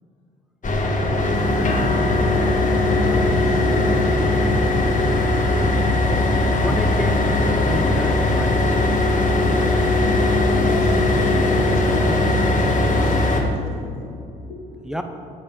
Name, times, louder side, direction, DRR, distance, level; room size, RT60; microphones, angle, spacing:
sound 1, 0.6-13.4, left 2 dB, 40° left, 2.0 m, -19 dB
voice 1, 0.9-2.1 2.9-4.9 8.9-14.9, left 2 dB, 75° left, -1 dB, 2.2 m, -34 dB
voice 2, 6.6-9.4 14.8-15.0, equal, 5° right, 5 dB, 1.4 m, -31 dB
9.6 x 8.4 x 7.2 m, 2.5 s
hypercardioid pair, 50°, 21 cm